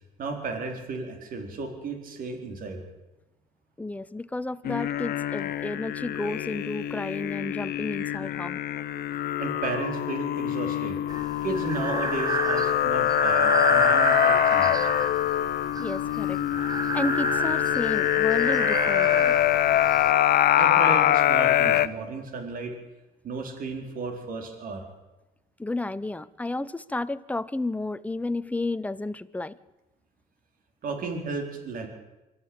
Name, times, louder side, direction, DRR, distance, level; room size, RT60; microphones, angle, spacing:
voice 1, 0.2-2.8 9.4-11.0 11.4-14.9 20.5-22.7 23.2-24.8 30.8-31.9, right 4 dB, 55° right, 5 dB, 4.2 m, -33 dB
voice 2, 3.8-8.6 15.8-16.7 16.9-19.4 25.6-29.6, left 2 dB, 10° left, 14 dB, 0.8 m, -32 dB
sound 1, 4.6-21.9, left 12 dB, 65° left, 0.9 m, -24 dB
Breathing, 11.1-20.1, right 4 dB, 20° right, 0.8 m, -30 dB
24.0 x 14.0 x 8.8 m, 1.0 s
cardioid pair, 110°, 17 cm